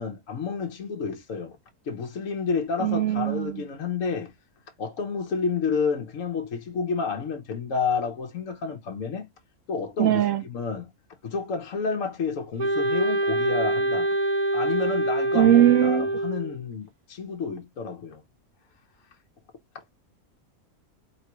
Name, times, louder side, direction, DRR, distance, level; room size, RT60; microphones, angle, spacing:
voice 1, 0.0-1.6 1.9-4.3 4.8-9.3 9.7-10.9 11.2-14.1 14.5-18.2, left 5 dB, 65° left, 1.2 m, -30 dB
voice 2, 2.8-3.6 10.0-10.4 15.3-16.1, right 12 dB, 65° right, 1.0 m, -20 dB
Wind instrument woodwind instrument, 12.6-16.6, right 2 dB, 50° right, 0.5 m, -25 dB
4.6 x 3.7 x 2.9 m
omnidirectional pair, 1.6 m